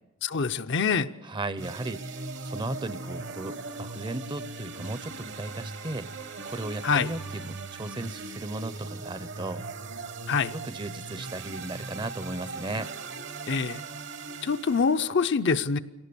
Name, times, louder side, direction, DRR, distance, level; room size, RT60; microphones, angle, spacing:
voice 1, 0.2-1.1 6.8-7.1 10.3-10.5 13.5-13.8 14.4-15.8, left 5 dB, 60° left, 9 dB, 0.6 m, -25 dB
voice 2, 1.2-2.0 2.4-6.1 6.5-9.7 10.5-12.9, right 2 dB, 25° right, 14 dB, 0.6 m, -36 dB
sound 1, 1.6-15.1, right 3 dB, 60° right, 1.2 m, -39 dB
23.5 x 18.5 x 6.9 m, 1.0 s
head